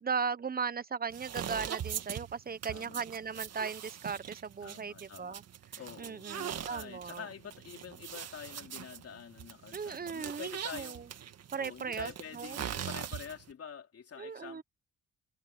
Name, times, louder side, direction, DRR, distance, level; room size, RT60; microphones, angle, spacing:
voice 1, 0.0-5.4 6.0-7.2 9.7-11.1 11.5-12.6 14.2-14.6, right 6 dB, 30° right, 1.1 m, -37 dB
sound 1, 1.1-13.5, right 9 dB, 55° right, 1.9 m, -42 dB
voice 2, 2.7-3.1 4.6-5.4 5.8-11.1 11.6-14.6, left 7 dB, 50° left, 3.4 m, -47 dB
cardioid pair, 90°, 30 cm